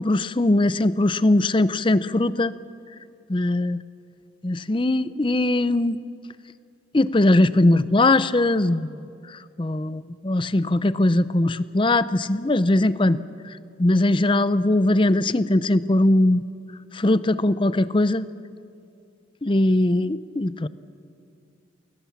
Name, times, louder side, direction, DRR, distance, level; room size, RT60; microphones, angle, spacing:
voice 1, 0.0-2.5 3.3-3.8 4.4-6.0 6.9-13.2 13.4-16.5 16.9-18.3 19.4-20.7, left 2 dB, 25° left, 15 dB, 0.6 m, -20 dB
29.5 x 21.5 x 7.3 m, 2.5 s
head